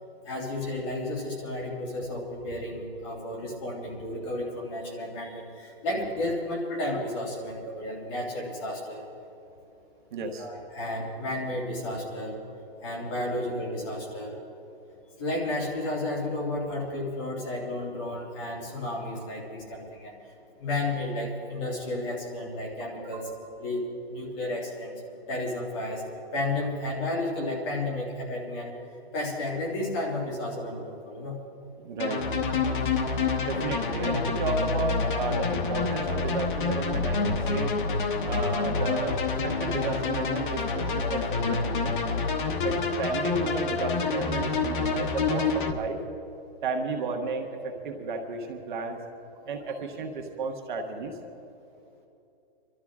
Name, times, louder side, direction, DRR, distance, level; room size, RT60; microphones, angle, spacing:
voice 1, 0.2-9.1 10.4-12.4 12.8-14.4 15.2-20.2 20.6-23.3 23.6-25.0 25.3-28.7 29.1-31.4, left 1 dB, 30° left, -2 dB, 2.8 m, -32 dB
voice 2, 10.1-10.5 22.8-23.3 31.8-32.4 33.4-39.2 39.4-42.0 42.6-46.0 46.6-49.0 49.4-51.2, right 3 dB, 50° right, 2 dB, 1.6 m, -33 dB
sound 1, 32.0-45.7, left 4 dB, 50° left, 1.3 m, -28 dB
24.5 x 13.0 x 3.7 m, 2.8 s
hypercardioid pair, 165°, 31 cm